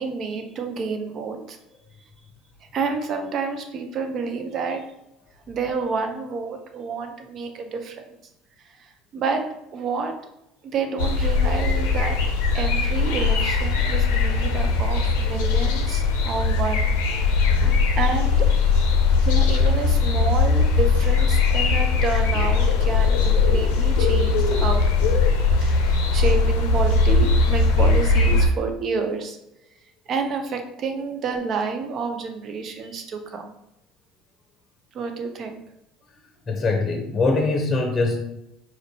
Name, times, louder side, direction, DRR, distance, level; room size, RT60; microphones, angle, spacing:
voice 1, 0.0-1.6 2.7-4.8 5.5-8.0 9.1-9.4 9.7-10.1 10.6-12.2 12.5-16.9 18.0-18.8 19.2-25.2 25.6-29.4 30.1-33.6 34.9-35.6, right 4 dB, 50° right, 5 dB, 0.6 m, -29 dB
sound 1, 11.0-28.5, left 4 dB, 80° left, 0.5 m, -20 dB
voice 2, 17.1-17.8 36.5-38.2, left 3 dB, 30° left, 2 dB, 0.7 m, -24 dB
4.3 x 2.5 x 2.8 m, 0.83 s
hypercardioid pair, 75°, 0 cm